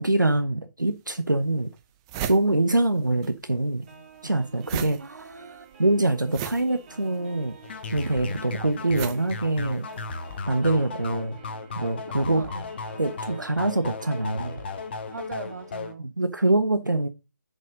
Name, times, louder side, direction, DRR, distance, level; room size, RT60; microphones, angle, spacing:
voice 1, 0.0-1.7 2.3-3.9 4.2-5.0 5.8-7.5 7.9-9.9 10.5-11.4 11.8-12.4 13.0-14.6 16.0-17.1, right 2 dB, 85° right, 1.0 m, -24 dB
sound 1, 0.8-0.9 1.5-1.6 1.8-3.3 3.6-10.1, right 9 dB, 15° right, 0.6 m, -37 dB
sound 2, 3.9-15.9, right 6 dB, 35° right, 2.6 m, -51 dB
voice 2, 5.0-5.7 12.3-12.7 15.1-16.1, right 4 dB, 65° right, 1.2 m, -40 dB
sound 3, 7.6-15.9, left 3 dB, 35° left, 1.1 m, -36 dB
7.3 x 5.4 x 5.1 m
figure-of-eight pair, 145°, 10 cm